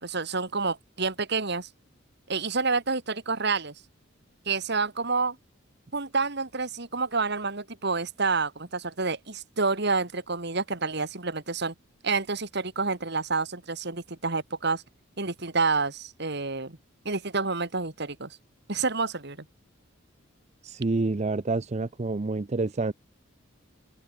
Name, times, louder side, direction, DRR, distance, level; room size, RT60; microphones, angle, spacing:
voice 1, 0.0-1.7 2.3-3.7 4.5-5.4 5.9-11.7 12.0-14.8 15.2-16.8 17.0-18.4 18.7-19.4, right 4 dB, 55° right, 2.7 m, -28 dB
voice 2, 20.6-22.9, right 3 dB, 35° right, 0.5 m, -28 dB
open air
head